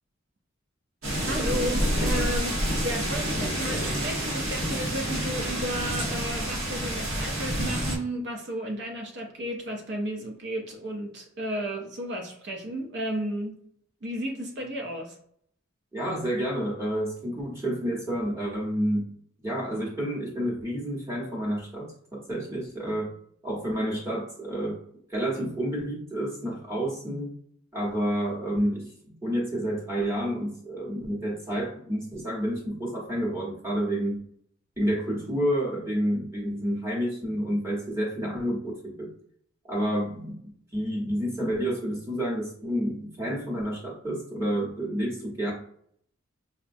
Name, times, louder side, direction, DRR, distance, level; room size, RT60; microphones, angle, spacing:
sound 1, 1.0-8.0, equal, 85° right, 1.1 m, -28 dB
voice 1, 1.2-13.6 14.0-15.2, equal, 55° right, 0.6 m, -33 dB
voice 2, 15.9-19.1 19.4-23.1 23.4-24.8 25.1-27.3 27.7-34.2 34.8-39.1 39.7-40.4 40.7-45.5, equal, 15° right, 0.9 m, -29 dB
4.7 x 2.1 x 2.5 m
head